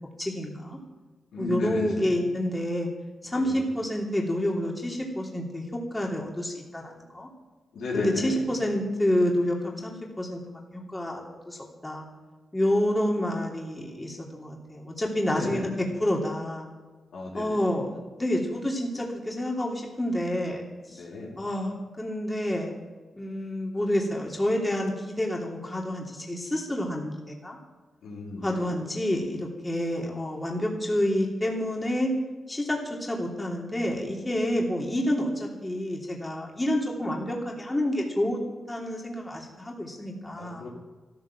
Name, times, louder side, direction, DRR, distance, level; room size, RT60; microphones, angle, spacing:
voice 1, 0.2-0.8 1.4-2.9 3.2-7.3 7.9-10.4 10.7-11.2 11.5-12.0 12.5-15.7 16.0-16.7 17.3-21.0 21.4-22.8 23.1-27.6 28.4-32.1 32.5-38.4 38.7-40.6, left 1 dB, 15° left, -1 dB, 3.1 m, -28 dB
voice 2, 1.3-2.2 3.2-3.7 7.7-8.5 15.3-15.8 17.1-17.7 20.9-21.4 28.0-28.8 40.4-40.7, left 3 dB, 85° left, -3 dB, 4.3 m, -34 dB
13.0 x 13.0 x 7.4 m, 1.3 s
cardioid pair, 85°, 0 cm